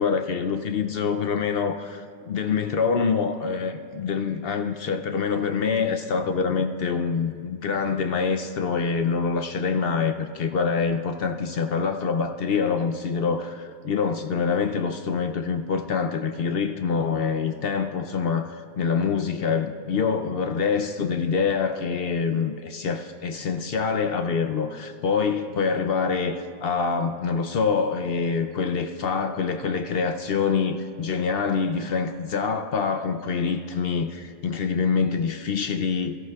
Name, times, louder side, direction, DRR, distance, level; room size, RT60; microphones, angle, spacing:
voice 1, 0.0-36.2, left 5 dB, 70° left, 6 dB, 0.5 m, -25 dB
22.0 x 14.0 x 2.3 m, 2.2 s
omnidirectional pair, 1.6 m